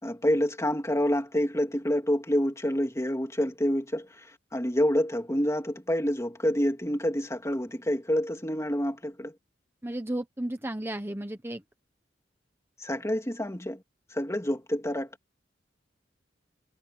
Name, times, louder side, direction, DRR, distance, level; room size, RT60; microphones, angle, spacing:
voice 1, 0.0-9.3 12.8-13.8 14.1-15.1, equal, 15° left, 2.7 m, -28 dB
voice 2, 9.8-11.6, right 1 dB, 15° right, 1.1 m, -33 dB
head